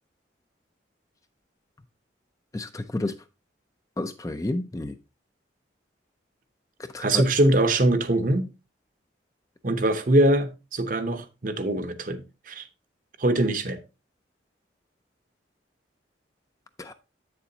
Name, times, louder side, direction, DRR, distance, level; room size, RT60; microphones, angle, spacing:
voice 1, 2.5-3.1 4.0-4.9 6.9-7.2 16.8-16.9, left 2 dB, 15° left, 0.4 m, -30 dB
voice 2, 7.0-8.5 9.6-12.7 13.2-13.8, right 1 dB, 45° right, 0.8 m, -23 dB
8.1 x 6.9 x 2.7 m
head